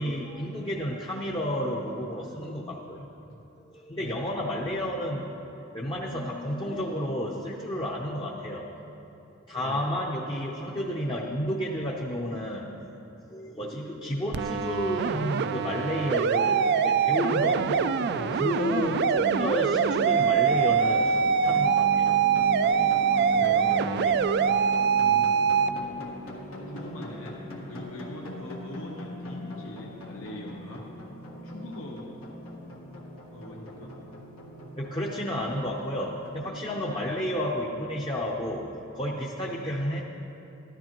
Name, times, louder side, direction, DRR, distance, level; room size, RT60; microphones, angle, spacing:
voice 1, 0.0-3.1 3.6-5.3 5.7-8.7 9.5-12.8 13.3-22.2 22.5-22.8 24.0-24.5 29.6-29.7 34.8-40.0, equal, 25° left, -2 dB, 0.7 m, -31 dB
voice 2, 4.0-4.3 9.6-9.8 13.6-13.8 22.9-23.7 24.5-25.4 26.5-27.4 27.6-30.9 31.4-32.2 33.2-34.0 36.9-37.1 39.4-39.6, left 1 dB, 75° left, -2 dB, 1.0 m, -42 dB
sound 1, 14.3-25.7, right 7 dB, 55° right, 0.3 m, -24 dB
sound 2, 17.1-36.4, left 1 dB, 90° left, 1.5 m, -39 dB
13.5 x 12.5 x 3.0 m, 2.9 s
head